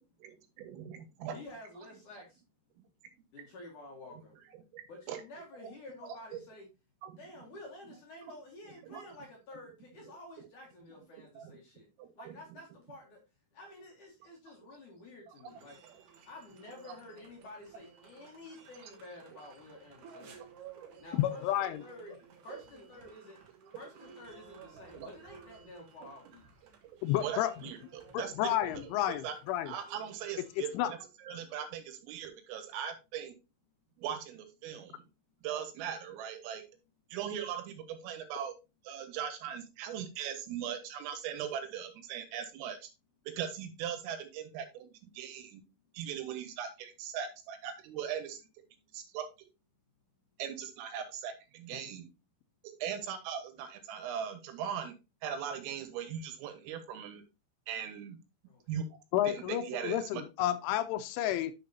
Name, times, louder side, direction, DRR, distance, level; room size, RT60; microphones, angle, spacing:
voice 1, 0.2-1.4 2.8-2.9 4.1-4.2 4.7-5.2 5.6-5.7 6.0-6.4 7.0-7.2 8.8-9.0 11.1-11.6 12.0-12.6 15.3-15.4 15.8-16.0 16.9-17.0 20.4-20.5 22.5-22.6 24.8-25.1 27.2-29.3 29.7-33.4 34.0-35.0 35.4-36.6 37.1-38.5 38.8-42.9 43.4-45.6 45.9-48.4 48.9-49.2 50.4-52.1 52.6-54.9 55.2-57.2 57.7-58.2 58.7-59.0 59.2-60.2, right 8 dB, 85° right, 8 dB, 4.0 m, -40 dB
voice 2, 1.3-2.4 3.3-4.4 4.9-6.7 7.2-11.9 12.2-13.2 13.5-15.8 16.3-20.5 21.0-22.1 22.4-23.4 23.8-26.5 27.1-27.3 48.9-49.0 58.5-58.8, left 2 dB, 60° left, -1 dB, 2.2 m, -50 dB
sound 1, 15.5-30.8, right 6 dB, 70° right, 2.0 m, -56 dB
voice 3, 21.2-21.8 27.0-27.5 28.1-29.7 30.7-30.9 59.1-61.5, left 13 dB, 80° left, 11 dB, 2.9 m, -31 dB
10.5 x 6.1 x 2.8 m, 0.27 s
omnidirectional pair, 5.8 m